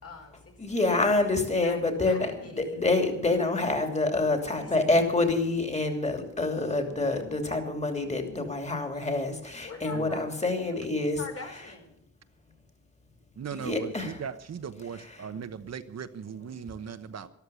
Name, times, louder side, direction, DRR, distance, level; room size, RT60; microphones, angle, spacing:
voice 1, 0.0-1.1 1.5-2.8 4.3-5.0 9.6-10.2 10.6-10.8 11.2-12.0, left 3 dB, 50° left, 3 dB, 4.3 m, -44 dB
voice 2, 0.6-2.3 2.6-11.2 13.5-14.2 15.0-15.3, left 2 dB, 20° left, 5 dB, 2.9 m, -27 dB
voice 3, 13.4-17.3, right 7 dB, 60° right, 10 dB, 1.1 m, -38 dB
13.5 x 13.0 x 7.0 m, 0.76 s
cardioid pair, 100°, 30 cm